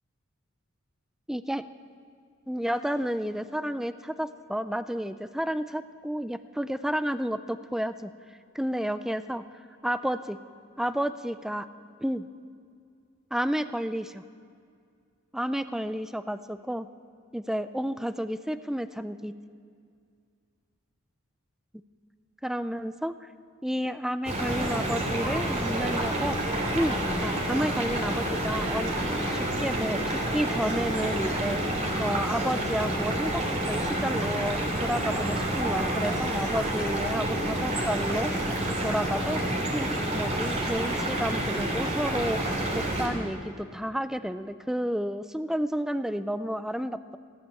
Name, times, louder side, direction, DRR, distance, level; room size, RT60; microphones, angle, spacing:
voice 1, 1.3-1.6 2.5-8.1 8.5-9.4 9.8-10.4 10.8-11.7 12.0-12.3 13.3-14.2 15.3-16.9 17.3-19.3 22.4-23.3 23.6-26.4 26.7-28.9 29.3-31.6 32.0-42.4 42.7-47.2, equal, ahead, 12 dB, 0.3 m, -31 dB
sound 1, 24.2-43.1, right 1 dB, 35° right, 3.0 m, -28 dB
15.5 x 13.0 x 7.0 m, 2.3 s
head